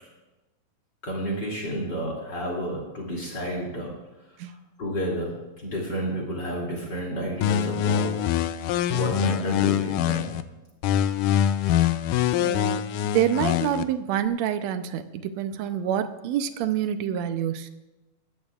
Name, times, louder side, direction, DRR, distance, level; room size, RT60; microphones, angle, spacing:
voice 1, 1.0-3.9 4.8-8.3 8.6-10.3, equal, 35° left, -1 dB, 3.1 m, -31 dB
sound 1, 7.4-10.4 10.8-13.8, left 10 dB, 85° left, 2.1 m, -24 dB
voice 2, 12.4-17.7, right 10 dB, 75° right, 10 dB, 1.8 m, -27 dB
20.0 x 14.0 x 2.4 m, 1.0 s
omnidirectional pair, 3.6 m